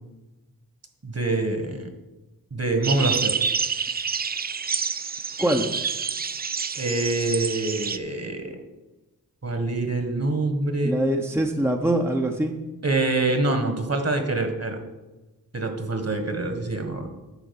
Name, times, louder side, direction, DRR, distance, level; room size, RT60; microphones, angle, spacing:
voice 1, 1.0-1.9 2.5-3.3 6.7-8.6 9.4-10.9 12.8-14.8 15.5-17.1, right 2 dB, 45° right, 6 dB, 1.7 m, -25 dB
sound 1, 2.8-8.0, right 5 dB, 25° right, 0.4 m, -28 dB
voice 2, 5.4-5.8 10.8-12.6, right 1 dB, 5° right, 3 dB, 0.8 m, -23 dB
10.0 x 4.4 x 7.1 m, 1.1 s
cardioid pair, 60°, 36 cm